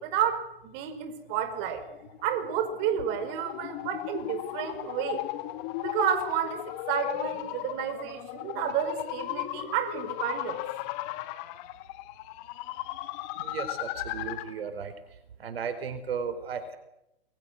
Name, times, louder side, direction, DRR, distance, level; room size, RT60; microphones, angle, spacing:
voice 1, 0.0-1.9 2.2-5.2 5.8-10.6, right 9 dB, 35° right, 8 dB, 5.2 m, -31 dB
sound 1, 1.9-14.6, left 15 dB, 35° left, 2.2 m, -36 dB
voice 2, 13.4-14.9 15.4-16.8, right 6 dB, 75° right, 10 dB, 4.6 m, -35 dB
28.5 x 23.0 x 6.5 m, 0.85 s
hypercardioid pair, 130°, 30 cm